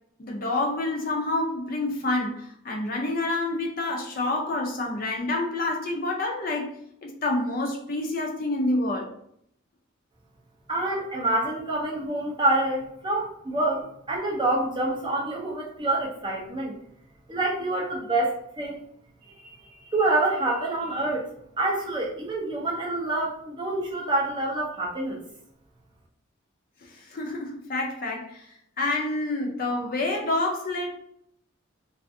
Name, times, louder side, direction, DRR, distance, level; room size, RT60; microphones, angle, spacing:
voice 1, 0.2-6.7 7.0-9.1 26.8-28.5 28.8-31.0, left 2 dB, 45° left, 0 dB, 0.5 m, -28 dB
voice 2, 10.7-16.7 17.3-18.8 19.2-19.6 19.8-21.3 21.6-25.2, right 2 dB, 20° right, -3 dB, 0.5 m, -27 dB
2.4 x 2.4 x 2.5 m, 0.70 s
head